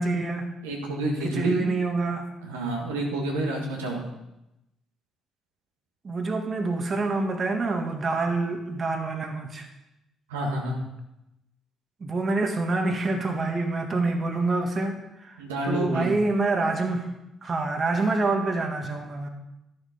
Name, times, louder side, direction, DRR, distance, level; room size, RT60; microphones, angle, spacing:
voice 1, 0.0-0.5 1.2-2.3 6.0-9.7 12.0-17.1 17.4-19.3, right 3 dB, 40° right, 4 dB, 1.8 m, -26 dB
voice 2, 0.6-1.6 2.4-4.1 10.3-10.8 15.4-16.1, right 1 dB, 85° right, -1 dB, 1.8 m, -29 dB
12.5 x 7.3 x 5.2 m, 0.89 s
hypercardioid pair, 45°, 0 cm